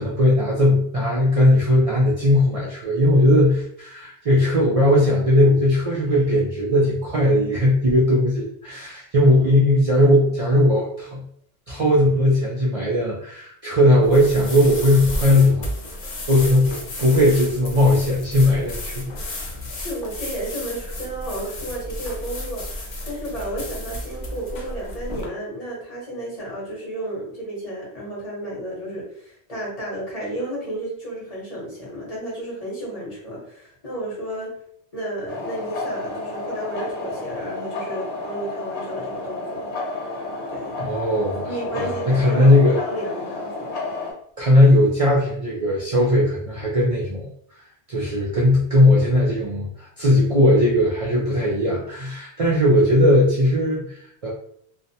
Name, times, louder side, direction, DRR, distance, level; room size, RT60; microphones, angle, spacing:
voice 1, 0.0-11.2 11.7-15.7 16.3-16.7 17.0-19.6 40.8-42.8 44.4-47.3 47.9-54.3, left 1 dB, 60° right, -5 dB, 0.3 m, -18 dB
voice 2, 9.9-10.3 19.8-34.5 34.9-39.7 40.5-40.8 41.4-43.8, right 1 dB, 35° left, -5 dB, 1.1 m, -32 dB
sound 1, 14.0-25.3, left 1 dB, 50° left, 0.6 m, -32 dB
sound 2, 35.3-44.1, left 2 dB, 85° left, 1.0 m, -31 dB
2.5 x 2.1 x 2.7 m, 0.67 s
omnidirectional pair, 1.1 m